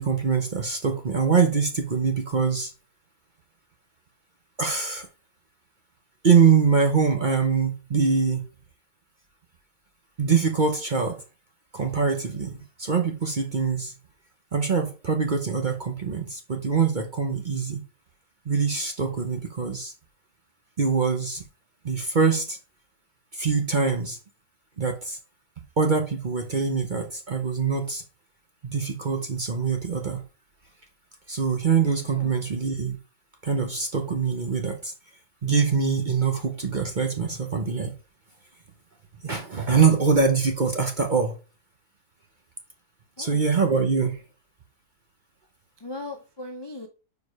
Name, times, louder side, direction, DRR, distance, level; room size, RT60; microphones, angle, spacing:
voice 1, 0.0-2.7 4.6-5.1 6.2-8.5 10.2-11.2 11.7-13.9 14.5-17.8 18.5-19.9 20.8-21.4 21.8-22.6 23.3-24.2 24.8-25.2 25.8-28.0 28.7-30.2 31.3-33.0 33.4-34.9 35.4-37.9 39.2-41.4 43.2-44.2, right 5 dB, 40° right, 0.7 m, -24 dB
voice 2, 32.1-32.6 43.2-43.4 45.8-46.9, left 2 dB, 40° left, 0.3 m, -39 dB
5.1 x 4.7 x 4.6 m
omnidirectional pair, 1.8 m